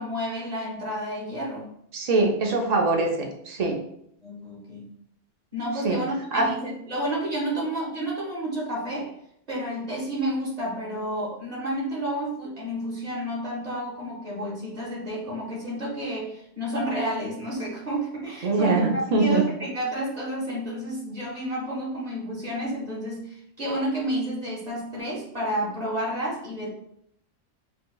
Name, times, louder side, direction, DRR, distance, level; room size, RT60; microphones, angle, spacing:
voice 1, 0.0-1.7 4.2-4.9 5.5-9.1 9.5-26.7, right 1 dB, 35° right, -4 dB, 1.0 m, -30 dB
voice 2, 1.9-3.1 3.5-3.8 5.8-6.0 6.3-6.5 18.4-19.4, right 3 dB, 50° right, 1 dB, 0.5 m, -22 dB
4.5 x 2.3 x 2.2 m, 0.72 s
omnidirectional pair, 1.3 m